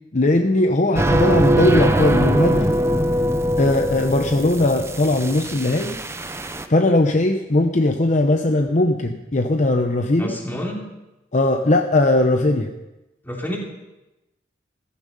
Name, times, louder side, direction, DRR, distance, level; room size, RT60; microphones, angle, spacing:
voice 1, 0.1-2.7 3.6-6.0 6.7-10.4 11.3-12.7, left 2 dB, 40° left, 5 dB, 0.8 m, -19 dB
sound 1, 1.0-6.7, right 1 dB, 15° right, 0.7 m, -21 dB
voice 2, 10.2-10.8 13.2-13.6, left 1 dB, 10° left, -1 dB, 3.1 m, -28 dB
14.5 x 14.5 x 5.4 m, 0.99 s
head